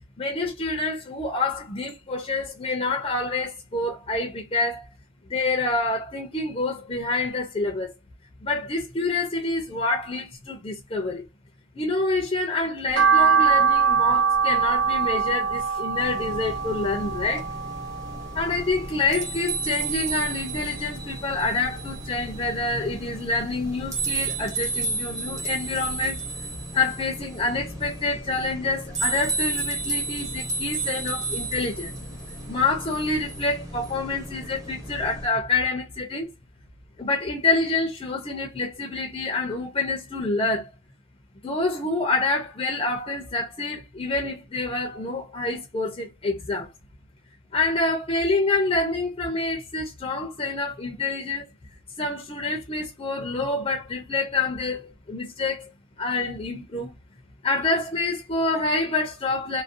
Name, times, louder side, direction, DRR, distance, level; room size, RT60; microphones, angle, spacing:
voice 1, 0.2-4.8 5.3-7.9 8.4-11.2 11.7-17.5 18.3-26.2 26.7-31.9 32.5-36.3 37.0-40.7 41.4-46.7 47.5-51.5 52.0-55.7 56.0-56.9 57.4-59.6, left 3 dB, 25° left, 0.4 m, -27 dB
sound 1, 12.9-19.3 19.6-20.8 21.1-22.5 22.9-23.0 23.5-23.6 23.8-23.9, right 5 dB, 60° right, 0.4 m, -23 dB
sound 2, 16.0-35.3, right 3 dB, 15° right, 0.6 m, -33 dB
2.4 x 2.1 x 2.5 m
head